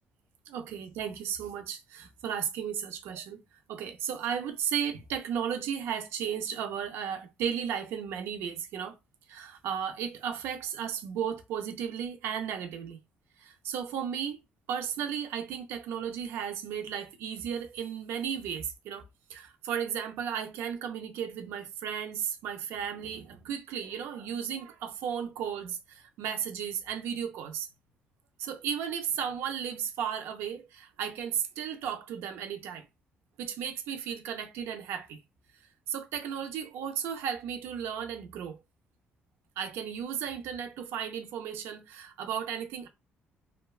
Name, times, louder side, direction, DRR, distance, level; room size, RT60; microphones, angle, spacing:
voice 1, 0.5-3.4 3.7-9.0 9.3-13.0 13.4-14.4 14.7-27.7 28.4-32.9 33.4-35.2 35.9-38.6 39.6-42.9, right 8 dB, 80° right, 0.5 m, -34 dB
2.8 x 2.1 x 2.3 m
cardioid pair, 170°, 4 cm